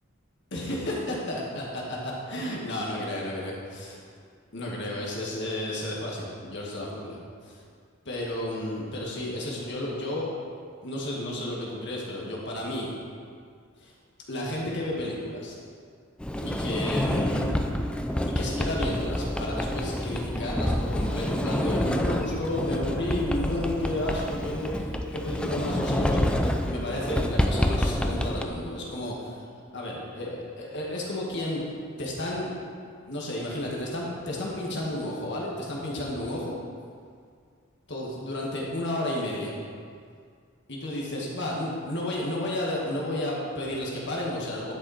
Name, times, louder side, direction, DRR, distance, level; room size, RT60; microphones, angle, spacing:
voice 1, 0.5-4.0 4.5-7.6 8.1-10.3 10.8-12.9 13.8-13.9 14.3-15.6 16.4-17.5 18.2-29.3 29.7-31.6 32.0-32.5 33.1-36.5 37.9-39.5 40.7-44.7, left 1 dB, 60° left, -3 dB, 1.8 m, -32 dB
Sliding door, 16.2-28.4, left 1 dB, 5° left, 0.4 m, -28 dB
10.5 x 6.4 x 4.3 m, 2.1 s
head